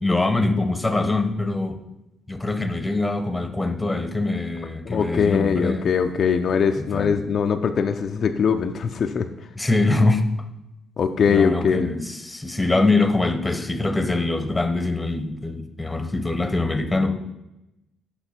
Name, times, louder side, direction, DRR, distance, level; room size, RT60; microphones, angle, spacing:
voice 1, 0.0-1.8 2.3-5.9 6.8-7.2 9.6-10.2 11.3-17.1, left 2 dB, 10° left, 7 dB, 0.9 m, -23 dB
voice 2, 4.9-9.3 11.0-11.9, left 6 dB, 55° left, 5 dB, 0.4 m, -21 dB
8.0 x 5.8 x 4.3 m, 0.91 s
cardioid pair, 90°, 0 cm